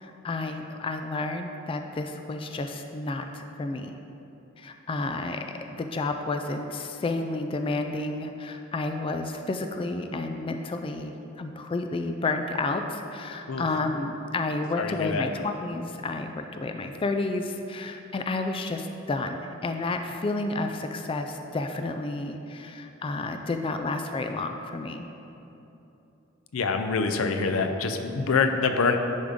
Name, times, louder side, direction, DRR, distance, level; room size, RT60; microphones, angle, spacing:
voice 1, 0.0-4.0 4.6-25.1, left 2 dB, 25° left, 6 dB, 0.3 m, -31 dB
voice 2, 14.8-15.3 26.5-29.0, left 4 dB, 90° left, 7 dB, 0.5 m, -25 dB
10.5 x 5.1 x 3.6 m, 3.0 s
head